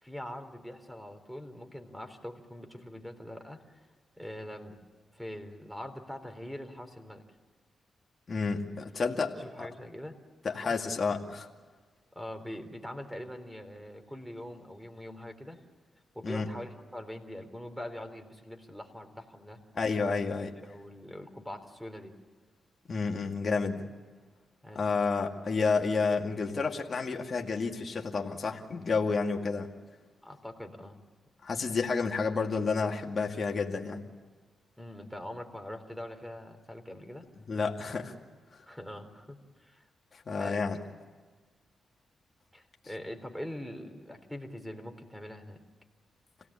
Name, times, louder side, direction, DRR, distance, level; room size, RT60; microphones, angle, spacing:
voice 1, 0.0-3.8 4.2-4.8 5.1-7.2 9.4-10.1 10.5-10.7 12.1-15.6 16.1-19.6 20.6-22.1 24.6-24.8 30.2-31.0 34.8-37.3 38.7-39.9 40.4-40.7 42.5-45.6, left 1 dB, ahead, 7 dB, 3.8 m, -43 dB
voice 2, 8.3-9.7 10.4-11.5 16.2-16.5 19.8-20.5 22.9-23.8 24.7-29.7 31.4-34.0 37.5-38.1 40.1-40.8, left 4 dB, 45° left, 1 dB, 2.3 m, -30 dB
27.0 x 17.5 x 8.6 m, 1.4 s
cardioid pair, 70°, 0 cm